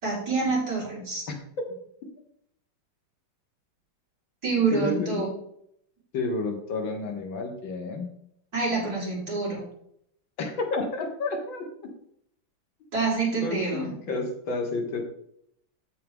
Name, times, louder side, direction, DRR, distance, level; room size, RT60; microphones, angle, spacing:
voice 1, 0.0-1.2 4.4-5.3 8.5-9.6 12.9-13.9, right 4 dB, 50° right, -6 dB, 4.6 m, -26 dB
voice 2, 4.7-5.3 6.1-8.1 10.4-11.7 13.4-15.0, left 3 dB, 85° left, 3 dB, 2.2 m, -30 dB
14.0 x 4.8 x 3.7 m, 0.72 s
omnidirectional pair, 2.0 m